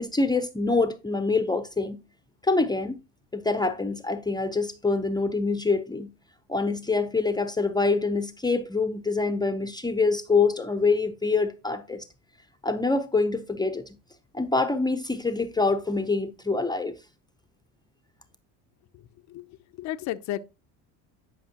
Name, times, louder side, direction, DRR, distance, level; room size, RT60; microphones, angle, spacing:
voice 1, 0.0-2.0 2.4-3.0 3.3-6.1 6.5-12.0 12.6-14.0 14.3-16.9, left 3 dB, 10° left, 0.6 m, -25 dB
voice 2, 18.9-20.5, left 13 dB, 50° left, 0.6 m, -34 dB
10.0 x 5.3 x 2.8 m
supercardioid pair, 95°, 36 cm